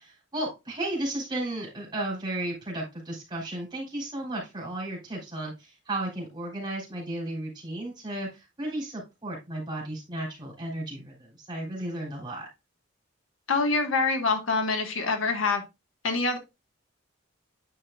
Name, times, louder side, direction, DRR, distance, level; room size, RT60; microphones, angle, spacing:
voice 1, 0.0-12.5, right 1 dB, 20° right, -2 dB, 3.5 m, -34 dB
voice 2, 13.5-15.6 16.0-16.4, left 4 dB, 85° left, 5 dB, 1.5 m, -25 dB
9.1 x 5.8 x 2.4 m, 0.24 s
head